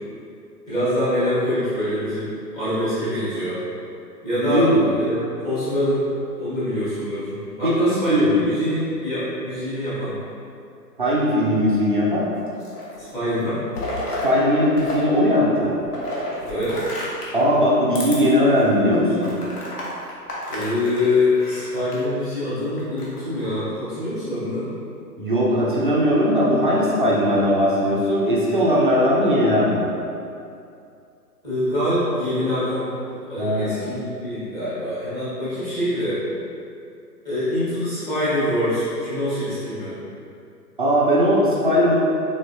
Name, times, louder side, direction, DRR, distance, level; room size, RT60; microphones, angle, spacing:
voice 1, 0.7-3.6 4.2-6.0 6.3-7.3 7.6-10.2 13.0-13.6 16.4-16.9 20.5-24.7 31.4-32.9 33.3-36.2 37.2-40.0, left 1 dB, 5° left, -15 dB, 1.0 m, -24 dB
voice 2, 4.4-4.8 7.6-8.4 11.0-12.2 14.2-15.7 17.3-19.4 25.2-29.9 33.4-33.8 40.8-41.9, equal, 35° right, -6 dB, 0.5 m, -19 dB
sound 1, 12.4-13.0 13.4-15.0 15.3-17.4 17.9-18.2 18.6-18.7 19.2-22.0 22.8-23.4, left 1 dB, 65° left, 1.1 m, -31 dB
3.9 x 3.8 x 2.5 m, 2.6 s
figure-of-eight pair, 135°, 49 cm